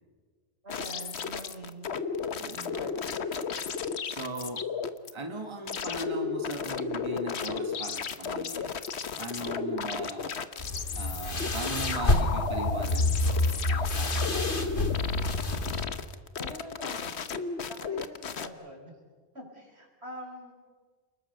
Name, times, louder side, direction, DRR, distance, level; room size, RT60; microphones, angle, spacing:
voice 1, 0.6-1.9 2.3-2.9 16.3-17.3 17.6-19.0 19.3-20.5, equal, 75° right, 2 dB, 5.1 m, -44 dB
sound 1, 0.7-5.1 5.7-18.5, left 5 dB, 80° left, 1.3 m, -34 dB
voice 2, 2.4-2.8 4.0-4.7 5.1-8.8 9.2-10.4 10.9-15.1, right 2 dB, 25° right, 5 dB, 1.7 m, -39 dB
sound 2, 10.6-15.9, left 2 dB, 55° left, 2.0 m, -28 dB
29.5 x 20.5 x 6.7 m, 1.6 s
omnidirectional pair, 1.1 m